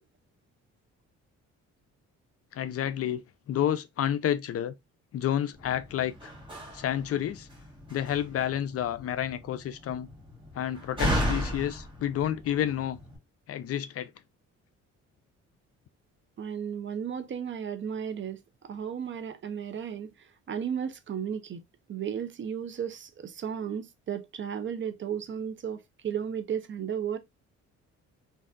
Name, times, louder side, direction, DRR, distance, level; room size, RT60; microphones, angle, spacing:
voice 1, 2.5-4.7 5.1-6.3 6.7-7.5 7.9-10.1 10.5-13.0 13.5-14.1, left 10 dB, 50° left, 0.4 m, -30 dB
Slam, 5.5-13.2, equal, 15° right, 1.5 m, -35 dB
voice 2, 16.4-21.6 21.9-27.2, right 8 dB, 40° right, 0.5 m, -34 dB
3.2 x 2.6 x 2.5 m
cardioid pair, 90°, 30 cm